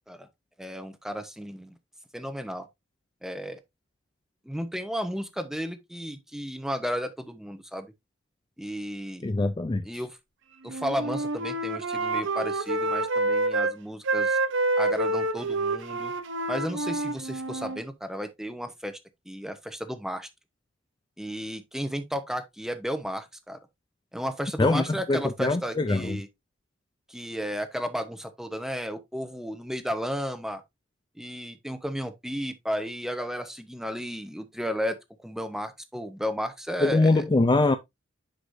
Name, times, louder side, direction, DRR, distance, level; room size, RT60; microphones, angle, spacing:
voice 1, 0.6-1.7 2.1-2.7 3.2-3.6 4.4-7.9 8.6-9.3 9.8-10.2 10.6-14.4 14.8-16.1 16.5-19.0 19.3-20.3 21.2-23.6 24.1-26.3 27.1-30.6 31.2-35.0 35.2-37.2, equal, ahead, 0.9 m, -33 dB
voice 2, 9.2-9.8 24.6-26.2 36.8-37.7, left 2 dB, 20° left, 0.4 m, -23 dB
Wind instrument woodwind instrument, 10.7-13.7 14.0-17.8, right 2 dB, 65° right, 0.8 m, -28 dB
9.9 x 5.0 x 2.6 m
head